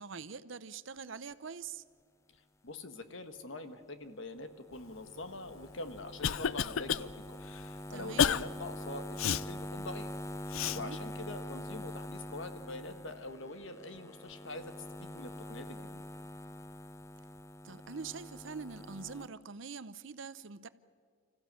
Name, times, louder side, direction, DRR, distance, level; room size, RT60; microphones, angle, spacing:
voice 1, 0.0-1.8 7.9-8.3 10.7-11.0 17.6-20.7, right 5 dB, 65° right, 15 dB, 0.7 m, -44 dB
voice 2, 2.3-7.4 7.9-10.1 10.7-14.7 15.0-16.0, left 2 dB, 60° left, 9 dB, 1.4 m, -44 dB
sound 1, 4.4-19.3, left 1 dB, 15° left, 0.5 m, -45 dB
Cough, 5.6-7.0 7.5-7.6 8.2-8.4 9.2-9.4 10.5-10.8, left 8 dB, 80° left, 0.5 m, -30 dB
25.5 x 15.0 x 8.8 m, 2.1 s
head